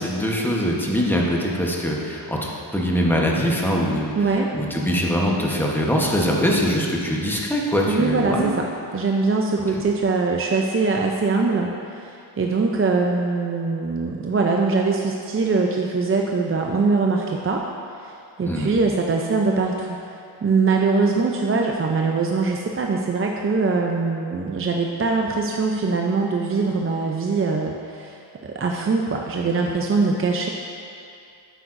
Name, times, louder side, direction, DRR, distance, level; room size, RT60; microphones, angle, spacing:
voice 1, 0.0-2.4 2.7-4.1 4.5-8.5 18.4-18.7, equal, 5° left, -2 dB, 0.9 m, -22 dB
voice 2, 4.2-4.5 7.9-8.7 8.9-17.7 18.0-20.0 20.4-30.5, right 4 dB, 30° right, 1 dB, 0.4 m, -22 dB
9.1 x 7.9 x 2.5 m, 2.5 s
wide cardioid pair, 115°, 46 cm